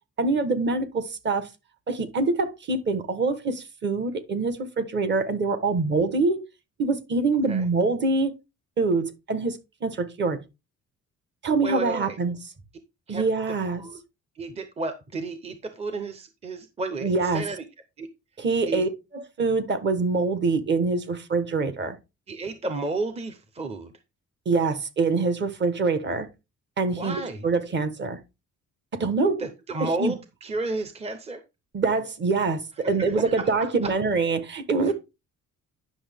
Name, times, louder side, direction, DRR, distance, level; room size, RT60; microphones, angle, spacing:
voice 1, 0.2-1.5 1.9-6.4 6.8-8.3 8.8-10.4 11.4-12.4 13.1-13.8 17.0-17.4 18.4-22.0 24.4-26.3 26.8-28.2 28.9-29.4 29.8-30.2 31.7-34.9, right 3 dB, 35° right, 1.2 m, -25 dB
voice 2, 11.6-12.2 13.1-13.2 13.8-14.0 14.4-17.6 18.0-18.1 18.7-18.9 22.3-23.9 27.0-27.4 29.4-31.4 32.8-33.9 34.8-34.9, right 3 dB, 20° right, 0.7 m, -32 dB
9.9 x 6.3 x 3.5 m
cardioid pair, 175°, 30 cm